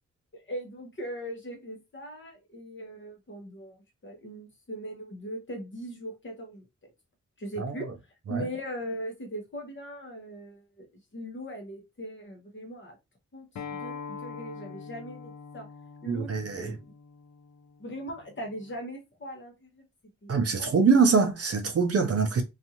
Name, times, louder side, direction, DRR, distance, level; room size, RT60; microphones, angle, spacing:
voice 1, 0.3-3.8 4.0-6.6 7.4-7.9 8.3-10.9 11.1-13.0 13.3-15.7 16.0-16.3 16.6-16.7 17.8-19.8 20.2-20.7, right 1 dB, 40° left, 0.9 m, -39 dB
voice 2, 7.6-7.9 8.3-8.5 16.1-16.8 20.3-22.4, right 5 dB, 55° right, 0.5 m, -24 dB
Acoustic guitar, 13.6-18.8, left 5 dB, 75° left, 0.5 m, -43 dB
2.6 x 2.4 x 2.8 m
wide cardioid pair, 170°, 30 cm